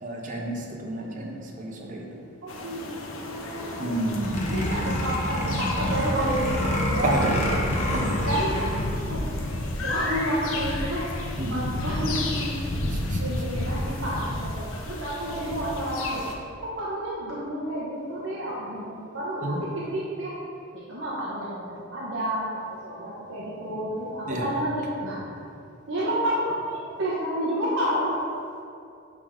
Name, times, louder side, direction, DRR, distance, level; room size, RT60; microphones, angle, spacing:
voice 1, 0.0-2.2 3.8-4.5 7.0-7.3 7.7-8.2 11.4-11.7 12.9-13.2 19.4-19.6 24.3-24.5, right 1 dB, 40° right, 0 dB, 0.9 m, -30 dB
voice 2, 1.0-1.3 2.4-2.9 3.2-4.0 4.5-7.6 8.2-9.5 9.8-12.7 13.2-16.2 16.6-20.3 20.7-25.2 25.9-28.1, right 1 dB, 70° right, -7 dB, 1.0 m, -30 dB
sound 1, 2.5-16.3, left 1 dB, 80° left, 0.7 m, -32 dB
sound 2, 4.2-9.0, left 1 dB, 35° left, 0.9 m, -27 dB
10.5 x 3.6 x 3.6 m, 2.5 s
head